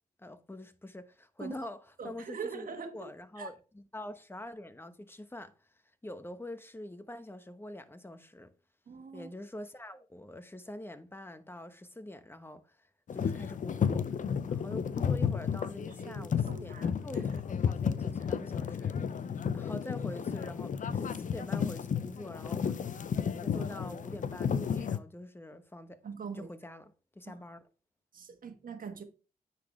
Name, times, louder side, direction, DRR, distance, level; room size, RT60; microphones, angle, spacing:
voice 1, 0.2-2.7 2.9-8.5 9.1-19.0 19.5-22.9 23.4-26.0 26.3-27.6, left 1 dB, 15° left, 1.0 m, -45 dB
voice 2, 2.0-3.1 3.4-3.5 8.9-9.3 15.8-17.2 26.0-26.5 27.3-27.4 28.1-29.0, right 5 dB, 60° right, 1.5 m, -43 dB
sound 1, 13.1-25.0, left 7 dB, 50° left, 0.6 m, -32 dB
9.5 x 4.1 x 3.2 m
supercardioid pair, 55°, 17 cm